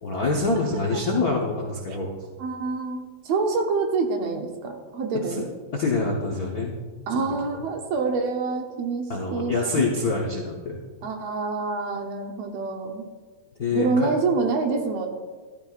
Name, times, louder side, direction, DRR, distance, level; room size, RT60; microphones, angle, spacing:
voice 1, 0.0-2.1 5.3-5.4 5.7-6.8 9.1-10.8 13.6-14.1, left 3 dB, 70° left, -2 dB, 0.8 m, -25 dB
voice 2, 2.4-5.5 7.1-9.9 11.0-13.0 13.7-15.1, right 4 dB, 70° right, 3 dB, 1.9 m, -26 dB
13.5 x 12.0 x 2.4 m, 1.4 s
omnidirectional pair, 3.5 m